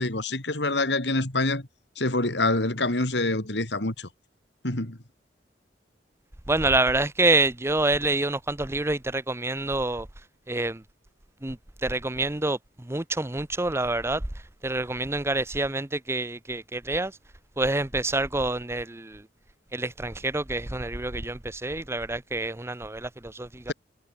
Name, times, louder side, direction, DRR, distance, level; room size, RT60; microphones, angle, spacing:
voice 1, 0.0-1.6 2.0-4.1 4.6-5.0, left 2 dB, 80° left, 3.7 m, -26 dB
voice 2, 6.5-10.1 10.5-10.8 11.4-14.2 14.6-17.1 17.6-19.3 19.7-23.7, right 2 dB, 15° right, 0.9 m, -27 dB
head